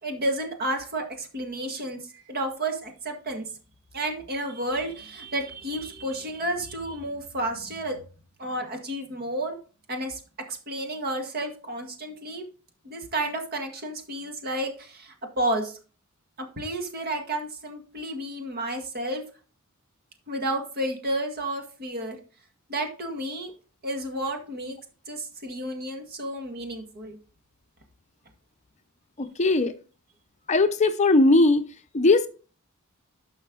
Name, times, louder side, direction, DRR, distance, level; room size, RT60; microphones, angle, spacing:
voice 1, 0.0-3.4 3.9-8.0 8.4-9.6 9.9-10.2 10.5-12.5 12.8-15.8 16.4-19.2 20.3-22.2 22.7-23.5 23.8-24.8 25.1-27.2, right 1 dB, 45° right, 1.8 m, -31 dB
voice 2, 29.2-29.7 30.5-31.6 31.9-32.3, left 2 dB, 35° left, 0.6 m, -19 dB
11.5 x 5.6 x 3.8 m
head